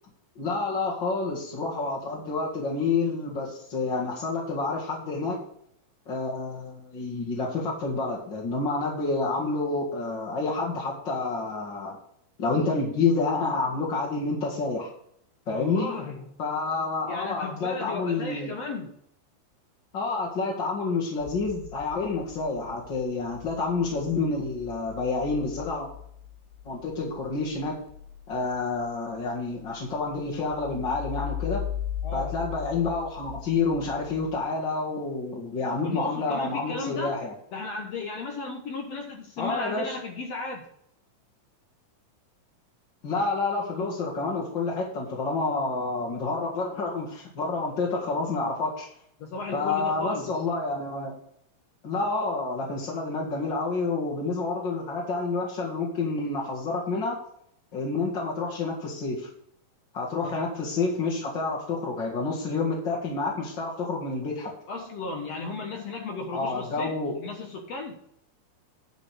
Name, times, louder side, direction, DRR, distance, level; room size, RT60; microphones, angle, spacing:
voice 1, 0.4-5.4 6.1-12.0 12.4-14.9 15.5-15.9 16.4-18.5 19.9-25.9 26.6-27.8 28.3-31.6 32.1-37.3 39.4-40.0 43.0-48.9 49.5-51.1 51.8-57.2 57.7-59.3 59.9-64.5 66.3-67.2, left 3 dB, 40° left, -5 dB, 2.0 m, -29 dB
voice 2, 15.5-16.3 17.1-18.9 32.0-32.4 35.8-37.2 37.5-40.6 49.2-50.3 60.2-60.4 64.7-68.0, left 3 dB, 65° left, 3 dB, 1.7 m, -35 dB
sound 1, 21.2-34.4, left 10 dB, 90° left, 1.6 m, -39 dB
10.5 x 5.2 x 6.4 m, 0.70 s
omnidirectional pair, 4.3 m